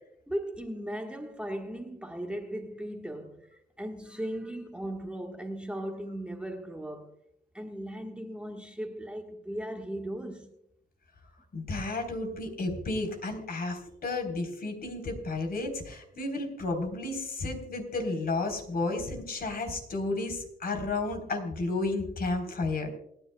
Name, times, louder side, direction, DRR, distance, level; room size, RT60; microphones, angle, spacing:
voice 1, 0.3-7.2 7.5-10.5, right 1 dB, 5° right, 1.4 m, -37 dB
voice 2, 11.5-22.9, left 2 dB, 50° left, 3.7 m, -32 dB
28.0 x 10.0 x 2.2 m
cardioid pair, 90°, 20 cm